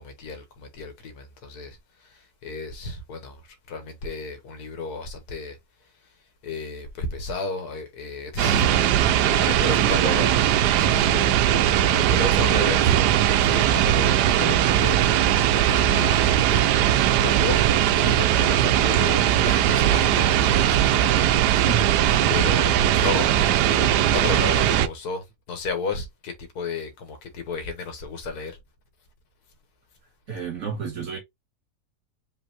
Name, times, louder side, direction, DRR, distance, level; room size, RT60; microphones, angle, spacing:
voice 1, 0.0-8.8 9.1-10.3 10.8-11.3 11.6-12.8 13.4-15.0 15.5-16.7 17.1-17.6 17.9-21.2 21.5-21.6 22.3-23.3 23.6-28.6, left 4 dB, 75° left, 1.7 m, -33 dB
sound 1, 8.4-24.9, right 11 dB, 85° right, 1.2 m, -20 dB
voice 2, 9.8-10.4 12.2-13.3 21.5-21.9 23.0-23.2 30.3-31.2, right 5 dB, 60° right, 2.7 m, -30 dB
5.4 x 3.4 x 2.8 m
omnidirectional pair, 1.7 m